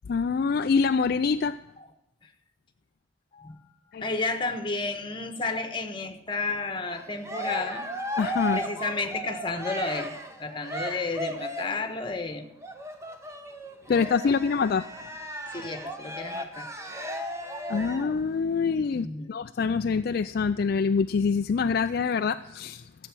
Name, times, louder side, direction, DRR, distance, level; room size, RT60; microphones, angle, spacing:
voice 1, 0.1-1.6 3.9-4.0 8.2-8.6 13.9-14.9 17.7-22.8, left 5 dB, 55° left, 10 dB, 0.4 m, -25 dB
voice 2, 4.0-7.9 8.5-12.5 13.9-14.4 15.5-16.7 18.9-19.3, left 3 dB, 25° left, 7 dB, 1.3 m, -32 dB
Cheering, 6.8-11.9 12.6-18.2, equal, 15° right, 1.2 m, -35 dB
13.5 x 7.8 x 6.2 m, 0.90 s
head